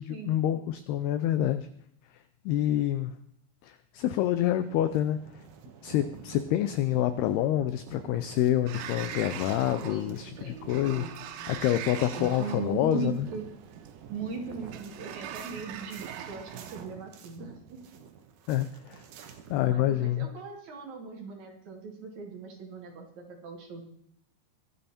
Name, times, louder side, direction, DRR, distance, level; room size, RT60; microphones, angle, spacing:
voice 1, 0.0-1.7 2.5-3.1 3.6-5.2 5.8-11.1 11.5-13.3 18.5-19.0 19.5-20.3, left 12 dB, 80° left, 11 dB, 2.4 m, -27 dB
sound 1, 4.6-19.6, right 7 dB, 65° right, 2.0 m, -49 dB
Sliding door, 8.7-16.9, right 10 dB, 90° right, 3.5 m, -42 dB
voice 2, 9.8-11.2 11.5-11.8 12.1-13.4 14.1-17.8 19.7-23.8, right 4 dB, 45° right, 1 dB, 3.3 m, -39 dB
24.0 x 9.0 x 4.3 m, 0.67 s
omnidirectional pair, 5.2 m